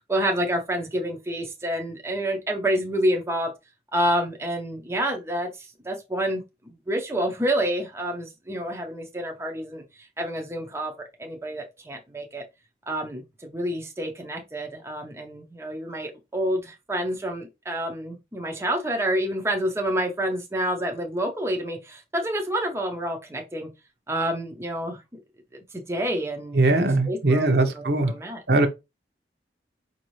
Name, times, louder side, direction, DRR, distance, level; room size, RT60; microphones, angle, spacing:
voice 1, 0.1-3.5 3.9-9.8 10.2-10.9 11.2-12.4 12.9-23.7 24.1-25.0 25.7-28.4, right 1 dB, 15° right, 0.6 m, -28 dB
voice 2, 26.5-28.1 28.5-28.7, right 2 dB, 65° right, 0.9 m, -20 dB
5.1 x 2.6 x 3.1 m
head